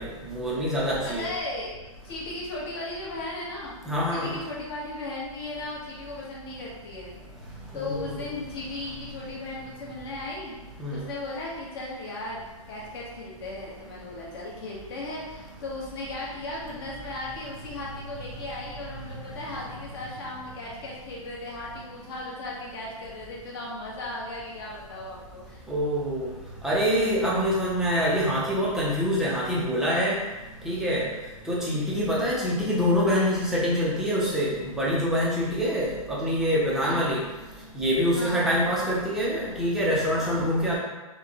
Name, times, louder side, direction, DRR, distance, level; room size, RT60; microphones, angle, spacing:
voice 1, 0.0-1.3 3.9-4.3 7.7-8.2 10.8-11.0 25.7-26.3 26.6-30.2 30.6-31.0 31.5-37.2 37.7-40.8, equal, ahead, -6 dB, 0.6 m, -25 dB
voice 2, 0.9-1.7 2.0-7.1 7.7-10.5 10.9-25.6 36.8-37.0 38.1-38.4 40.2-40.5, left 2 dB, 40° left, -5 dB, 1.2 m, -36 dB
6.1 x 2.2 x 2.9 m, 1.2 s
hypercardioid pair, 155°, 18 cm